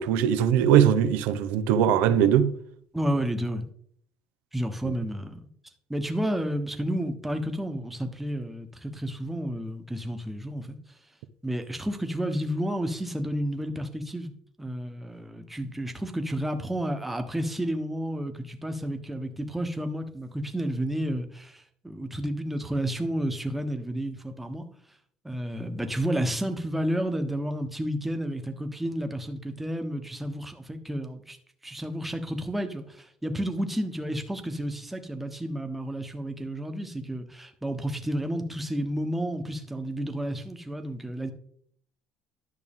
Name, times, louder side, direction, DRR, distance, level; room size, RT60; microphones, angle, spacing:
voice 1, 0.0-2.5 4.8-4.9, right 9 dB, 90° right, 0.6 m, -21 dB
voice 2, 2.9-3.7 4.5-5.5 5.9-10.8 11.4-14.3 14.6-24.6 25.2-31.4 31.6-41.3, equal, 5° right, 1.0 m, -31 dB
11.0 x 6.1 x 3.6 m
cardioid pair, 120°, 3 cm